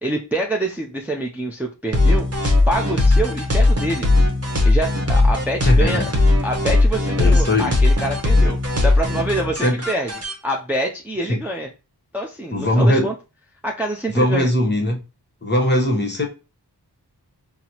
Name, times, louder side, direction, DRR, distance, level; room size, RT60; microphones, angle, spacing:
voice 1, 0.0-2.3 2.7-4.1 4.6-6.0 6.4-8.6 8.8-10.1 10.4-11.7 12.1-13.1 13.6-14.5, right 1 dB, 5° right, 0 dB, 0.5 m, -26 dB
sound 1, 1.9-10.3, left 2 dB, 35° right, 0.9 m, -18 dB
voice 2, 5.6-6.1 7.2-7.8 9.6-9.8 11.3-11.4 12.5-13.1 14.1-15.0 15.4-16.3, left 1 dB, 25° left, 1 dB, 1.0 m, -19 dB
4.0 x 2.0 x 2.8 m, 0.30 s
wide cardioid pair, 45°, 42 cm